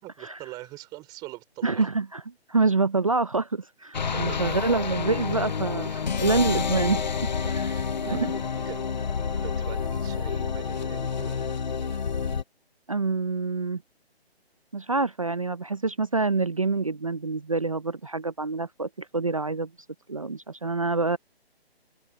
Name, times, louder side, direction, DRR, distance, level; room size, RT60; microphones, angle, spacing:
voice 1, 0.0-1.9 4.1-4.5 5.9-6.1 6.4-6.7 7.2-8.8 9.3-11.5, right 19 dB, 10° right, 4.4 m, -43 dB
voice 2, 1.6-2.2 2.5-5.9 6.2-7.0 8.1-8.3 12.9-13.8 14.7-19.7 20.1-21.2, right 3 dB, 35° right, 0.5 m, -26 dB
sound 1, 3.9-12.4, left 6 dB, 45° left, 0.5 m, -29 dB
open air
hypercardioid pair, 165°, 32 cm